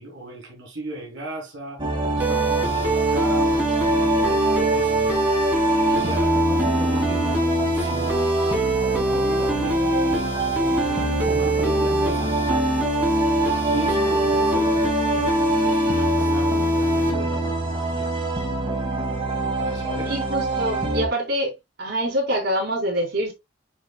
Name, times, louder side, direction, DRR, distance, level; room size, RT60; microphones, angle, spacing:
voice 1, 0.0-5.2 5.9-8.3 9.0-12.9 13.7-14.7 14.9-18.1 19.6-20.2, right 1 dB, 80° right, 3.7 m, -37 dB
sound 1, 1.8-21.1, right 2 dB, 25° right, 2.4 m, -25 dB
sound 2, 2.2-17.1, equal, 10° right, 2.4 m, -24 dB
voice 2, 14.5-14.9 20.0-21.5 21.8-23.3, equal, 60° right, 3.9 m, -25 dB
9.4 x 4.7 x 2.3 m
head